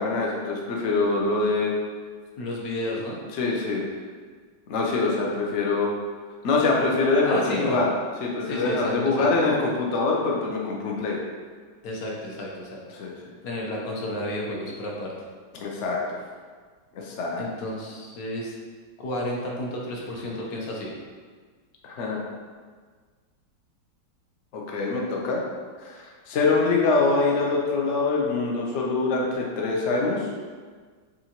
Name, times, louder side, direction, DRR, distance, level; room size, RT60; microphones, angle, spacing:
voice 1, 0.0-1.8 3.3-3.9 4.7-5.9 6.4-7.9 8.2-11.2 12.9-13.1 15.6-16.2 16.9-17.4 21.8-22.2 24.5-25.4 25.8-30.3, left 3 dB, 80° left, -2 dB, 0.6 m, -24 dB
voice 2, 2.4-3.2 7.2-7.8 8.4-9.3 11.8-13.0 13.4-15.1 17.4-18.5 19.0-21.0, left 1 dB, 60° left, -3 dB, 1.1 m, -32 dB
6.9 x 2.5 x 2.9 m, 1.5 s
omnidirectional pair, 2.1 m